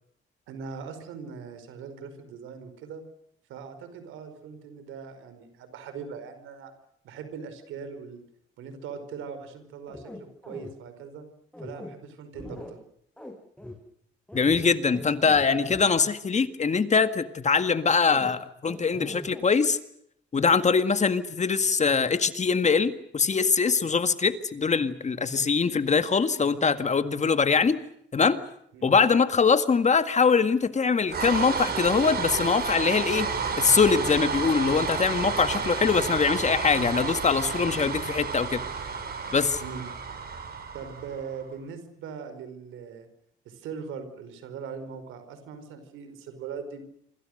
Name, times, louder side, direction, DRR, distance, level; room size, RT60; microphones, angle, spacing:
voice 1, 0.5-3.0 3.5-6.7 7.0-8.2 8.6-11.3 11.6-12.8 28.7-29.0 37.8-37.9 39.6-39.9 40.7-43.1 43.5-46.8, right 6 dB, 90° right, 10 dB, 5.1 m, -40 dB
sound 1, 9.9-10.7 11.5-11.9 12.3-12.7 13.2-13.3 13.6-13.7 14.3-15.8 18.0-18.3 18.6-19.4, left 1 dB, 5° left, 7.2 m, -41 dB
voice 2, 14.3-19.8 20.3-27.8 28.1-28.4 28.8-33.3 33.6-38.6 39.3-39.6, left 5 dB, 35° left, 10 dB, 1.9 m, -23 dB
sound 2, 31.1-41.4, right 5 dB, 50° right, 6.7 m, -31 dB
27.5 x 25.5 x 6.6 m, 0.72 s
cardioid pair, 90°, 20 cm